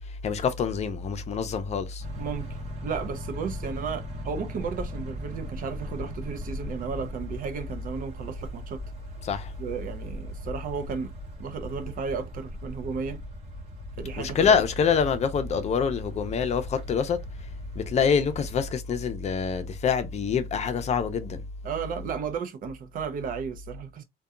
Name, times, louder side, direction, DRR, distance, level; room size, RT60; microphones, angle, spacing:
voice 1, 0.2-2.0 9.2-9.5 14.2-17.2 17.7-21.4, left 6 dB, 40° left, 0.5 m, -26 dB
sound 1, 2.0-18.7, equal, 40° right, 0.9 m, -40 dB
voice 2, 2.2-8.8 9.6-11.1 11.4-13.2 14.0-14.6 21.6-24.0, right 6 dB, 55° right, 0.6 m, -34 dB
2.7 x 2.2 x 2.3 m
cardioid pair, 110°, 17 cm